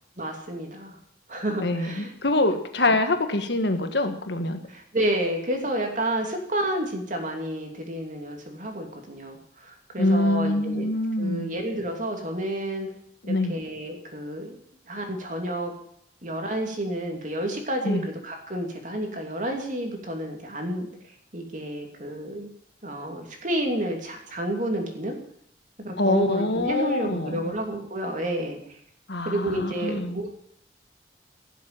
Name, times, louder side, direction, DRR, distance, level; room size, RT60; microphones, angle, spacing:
voice 1, 0.2-1.0 1.3-2.1 2.9-3.0 4.7-10.9 11.2-12.9 13.3-14.6 14.9-15.7 16.2-20.9 21.3-22.5 22.8-25.2 25.8-28.6 29.2-30.3, right 1 dB, 40° right, 3 dB, 2.9 m, -30 dB
voice 2, 1.6-4.6 10.0-11.5 13.2-13.6 17.8-18.0 26.0-27.5 29.1-30.2, left 2 dB, 65° left, 7 dB, 1.6 m, -25 dB
17.0 x 7.6 x 9.0 m, 0.69 s
head